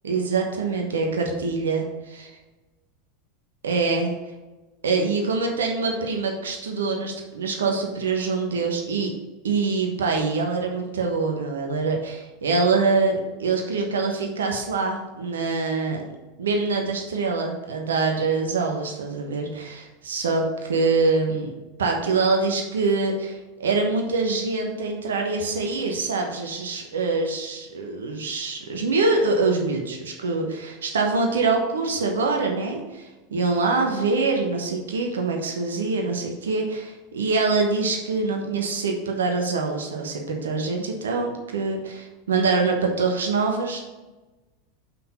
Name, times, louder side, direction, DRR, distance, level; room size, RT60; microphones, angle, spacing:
voice 1, 0.0-2.3 3.6-4.1 4.8-9.1 9.4-16.0 16.4-21.5 21.8-43.8, right 4 dB, 70° right, 2 dB, 1.1 m, -24 dB
6.0 x 5.7 x 4.2 m, 1.1 s
figure-of-eight pair, 85°, 0 cm